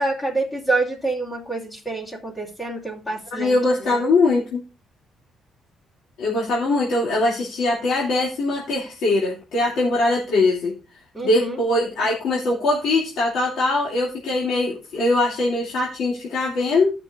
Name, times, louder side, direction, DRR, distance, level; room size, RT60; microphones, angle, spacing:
voice 1, 0.0-4.1 11.1-11.6, right 2 dB, 20° left, -3 dB, 2.5 m, -27 dB
voice 2, 3.3-4.6 6.2-10.7 11.2-16.9, left 2 dB, 80° left, -4 dB, 2.6 m, -21 dB
16.5 x 6.0 x 2.5 m, 0.32 s
cardioid pair, 90°, 0 cm